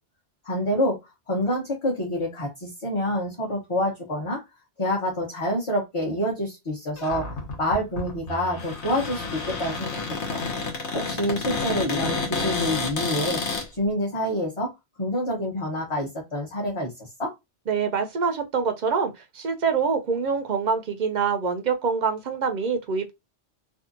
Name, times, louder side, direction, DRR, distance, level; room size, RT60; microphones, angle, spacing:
voice 1, 0.4-1.0 1.3-4.4 4.8-7.3 7.6-10.0 10.3-10.4 10.9-13.4 13.8-14.7 15.0-16.9 17.2-17.3, equal, 35° left, 0.7 m, -27 dB
Cupboard open or close, 7.0-13.7, left 4 dB, 85° left, 1.1 m, -30 dB
voice 2, 17.7-23.1, right 5 dB, 55° right, 0.5 m, -25 dB
2.7 x 2.4 x 2.5 m
omnidirectional pair, 1.1 m